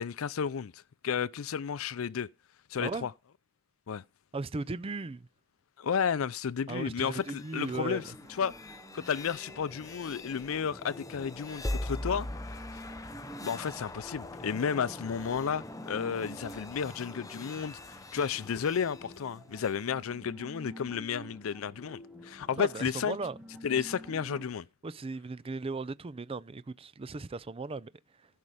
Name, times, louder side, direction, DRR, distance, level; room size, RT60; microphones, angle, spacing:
voice 1, 0.0-2.3 2.7-3.1 3.9-4.0 5.8-8.0 8.3-8.5 8.9-12.6 13.4-17.8 18.1-23.2 23.6-24.7, left 7 dB, 85° left, 0.5 m, -32 dB
voice 2, 4.3-5.3 6.7-8.0 22.6-23.4 24.8-27.9, right 3 dB, 30° right, 0.5 m, -37 dB
sound 1, 7.0-19.8, left 1 dB, 15° left, 0.8 m, -42 dB
sound 2, 7.7-24.4, equal, ahead, 1.9 m, -50 dB
15.0 x 5.6 x 4.9 m
head